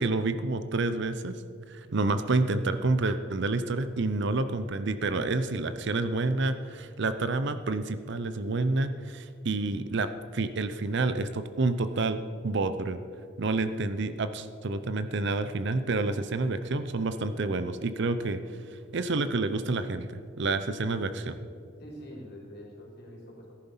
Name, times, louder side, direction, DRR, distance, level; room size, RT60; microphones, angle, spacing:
voice 1, 0.0-1.4 1.7-13.0 13.4-18.4 18.7-21.3, right 3 dB, 60° right, 11 dB, 0.7 m, -29 dB
voice 2, 21.0-21.5 21.8-23.5, equal, 55° left, -2 dB, 3.7 m, -46 dB
14.0 x 11.0 x 5.6 m, 2.2 s
head